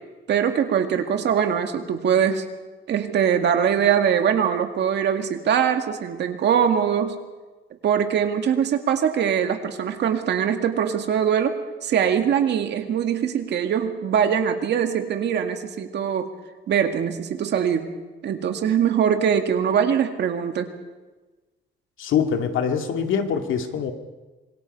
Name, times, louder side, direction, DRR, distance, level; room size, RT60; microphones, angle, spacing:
voice 1, 0.3-2.5 2.9-7.2 7.8-16.3 16.7-17.9 18.2-20.7, right 8 dB, 60° right, 6 dB, 2.1 m, -22 dB
voice 2, 22.0-23.9, left 7 dB, 80° left, 5 dB, 2.2 m, -24 dB
26.0 x 23.0 x 5.5 m, 1.2 s
cardioid pair, 170°, 20 cm